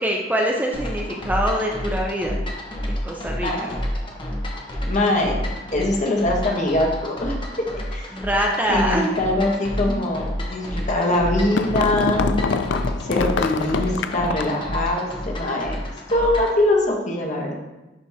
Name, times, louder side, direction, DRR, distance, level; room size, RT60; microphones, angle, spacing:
voice 1, 0.0-2.4 2.9-3.7 8.1-9.2, equal, 10° right, 0 dB, 0.5 m, -24 dB
sound 1, 0.7-16.6, equal, 30° left, 0.9 m, -30 dB
voice 2, 3.4-3.8 4.9-5.3 5.7-7.4 7.9-8.1 8.7-12.4 13.1-15.8 16.1-17.6, left 1 dB, 45° left, -1 dB, 1.1 m, -22 dB
sound 2, 10.9-14.7, left 5 dB, 80° left, 0.3 m, -25 dB
10.5 x 3.5 x 2.8 m, 1.0 s
head